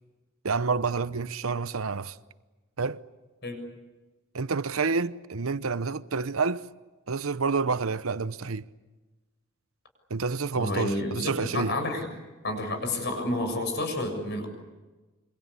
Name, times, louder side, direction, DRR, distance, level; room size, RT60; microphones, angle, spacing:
voice 1, 0.4-2.2 2.8-3.0 4.3-6.7 7.1-8.7 10.1-11.8, right 4 dB, 85° right, 0.9 m, -28 dB
voice 2, 10.6-12.1 12.4-14.5, left 2 dB, 55° left, 7.0 m, -30 dB
27.0 x 25.5 x 8.4 m
head